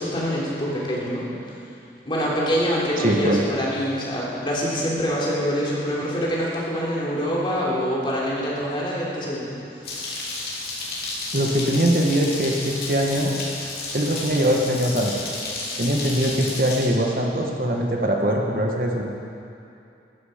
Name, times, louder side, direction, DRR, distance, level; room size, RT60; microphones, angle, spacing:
voice 1, 0.0-1.6 2.0-10.2, equal, 30° left, -6 dB, 3.2 m, -25 dB
voice 2, 3.0-3.4 11.3-13.3 13.9-15.2 15.8-19.0, equal, 50° right, 0 dB, 1.4 m, -22 dB
sound 1, 9.8-16.9, left 2 dB, 55° left, 3.4 m, -32 dB
15.0 x 14.0 x 5.1 m, 2.7 s
head